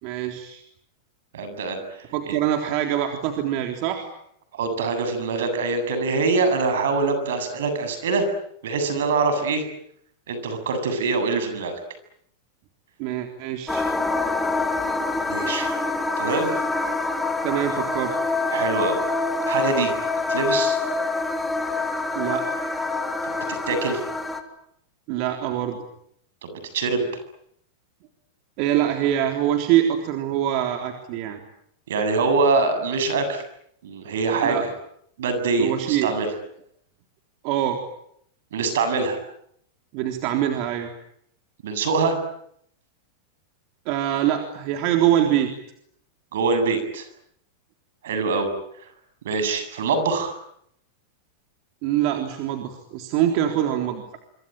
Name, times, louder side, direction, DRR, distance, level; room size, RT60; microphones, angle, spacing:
voice 1, 0.0-0.6 2.1-4.1 13.0-13.8 17.4-18.2 22.1-22.5 25.1-25.8 28.6-31.4 34.4-34.7 35.6-36.1 37.4-37.8 39.9-40.9 43.9-45.5 51.8-54.2, right 11 dB, 55° right, 4 dB, 3.6 m, -24 dB
voice 2, 1.3-2.3 4.5-8.3 8.6-9.7 10.3-11.7 15.3-15.7 16.2-16.5 18.5-19.0 19.5-19.9 20.3-20.8 23.2-24.0 26.4-27.2 31.9-33.4 33.8-34.6 35.2-36.3 38.5-39.2 41.6-42.2 46.3-47.1 48.0-48.5 49.2-50.3, right 4 dB, 80° right, 9 dB, 7.7 m, -24 dB
sound 1, 13.7-24.4, left 3 dB, 5° left, 3.4 m, -26 dB
26.0 x 24.5 x 9.1 m, 0.71 s
hypercardioid pair, 120°, 0 cm